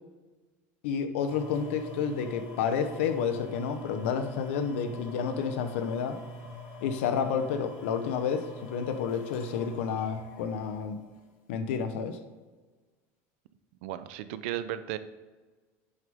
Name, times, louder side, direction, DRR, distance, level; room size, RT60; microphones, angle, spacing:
voice 1, 0.8-6.2 6.8-11.0 11.5-12.2, left 6 dB, 85° left, 9 dB, 0.9 m, -30 dB
sound 1, 1.3-11.3 11.9-12.0, equal, 65° left, 2.4 m, -45 dB
voice 2, 13.8-15.0, right 12 dB, 80° right, 13 dB, 0.6 m, -35 dB
10.5 x 6.5 x 3.6 m, 1.3 s
supercardioid pair, 135°, 7 cm